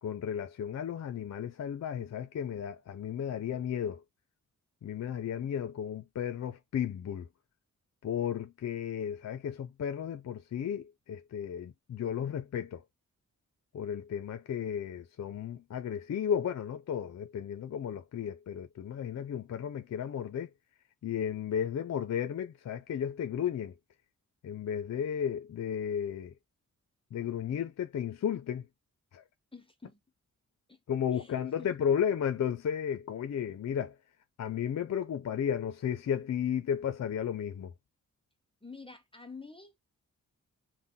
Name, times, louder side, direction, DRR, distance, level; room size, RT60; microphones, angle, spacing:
voice 1, 0.0-4.0 4.8-7.3 8.0-12.8 13.7-20.5 21.0-23.7 24.4-26.3 27.1-28.7 29.1-29.2 30.9-34.0 34.4-37.7, left 8 dB, 55° left, 0.5 m, -34 dB
voice 2, 29.5-30.0 30.7-30.8 31.1-31.7 38.6-40.0, left 4 dB, 15° left, 0.7 m, -49 dB
5.9 x 2.1 x 3.6 m
wide cardioid pair, 95°, 31 cm